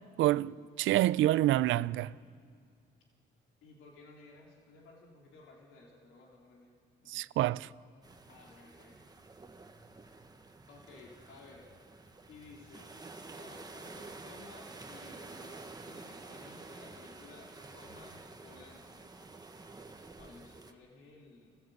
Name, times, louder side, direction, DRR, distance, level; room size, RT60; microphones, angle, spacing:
voice 1, 0.2-2.1 7.1-7.7, right 15 dB, 80° right, 0.5 m, -27 dB
voice 2, 3.6-6.7 7.0-7.2 8.3-9.1 10.7-11.7 12.3-12.9 13.4-19.4 20.2-21.6, left 3 dB, 85° left, 3.3 m, -55 dB
sound 1, 8.0-20.7, right 3 dB, 20° right, 1.3 m, -50 dB
26.0 x 15.0 x 7.9 m
cardioid pair, 90°, 20 cm